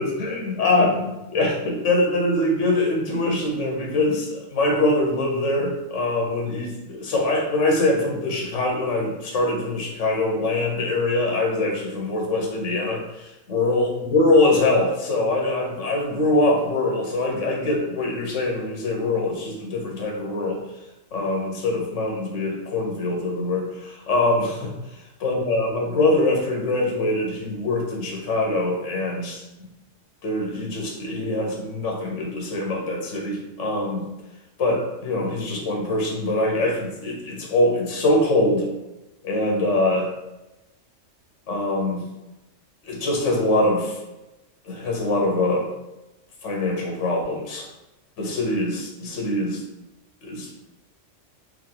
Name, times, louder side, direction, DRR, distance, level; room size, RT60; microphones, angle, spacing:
voice 1, 0.0-20.6 21.1-24.7 25.2-29.4 30.2-34.1 34.6-38.7 39.2-40.1 41.5-42.1 42.8-44.0 44.6-45.7 46.4-47.7 48.2-49.6 50.2-50.5, left 2 dB, 75° left, 0 dB, 1.2 m, -23 dB
3.7 x 2.6 x 3.8 m, 0.99 s
omnidirectional pair, 1.3 m